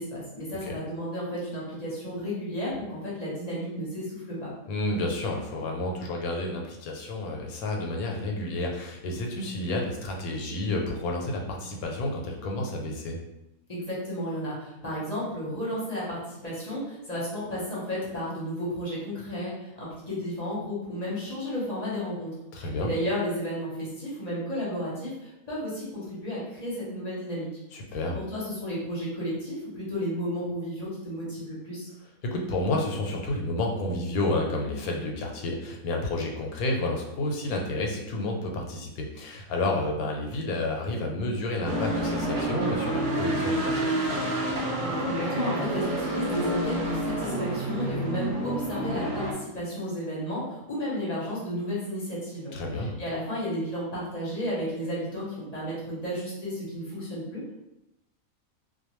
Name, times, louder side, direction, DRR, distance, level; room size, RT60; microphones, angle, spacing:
voice 1, 0.0-4.5 13.7-27.5 28.1-31.9 44.8-57.5, equal, 35° left, -7 dB, 0.7 m, -33 dB
voice 2, 4.7-13.2 22.5-22.9 27.7-28.2 32.2-43.9 52.5-53.0, left 2 dB, 85° left, 0 dB, 1.1 m, -30 dB
sound 1, 41.6-49.3, right 1 dB, 55° right, 0.5 m, -29 dB
2.4 x 2.2 x 2.9 m, 0.90 s
omnidirectional pair, 1.5 m